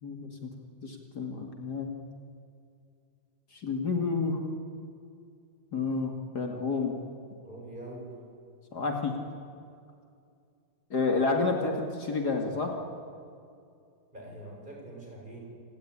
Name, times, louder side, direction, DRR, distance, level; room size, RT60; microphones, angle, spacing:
voice 1, 0.0-0.5 0.8-1.9 3.5-4.4 5.7-6.9 8.7-9.2 10.9-12.7, left 4 dB, 55° left, 2 dB, 2.8 m, -30 dB
voice 2, 7.4-8.2 14.1-15.4, right 1 dB, 25° right, -2 dB, 7.4 m, -44 dB
27.5 x 18.0 x 10.0 m, 2.4 s
omnidirectional pair, 2.1 m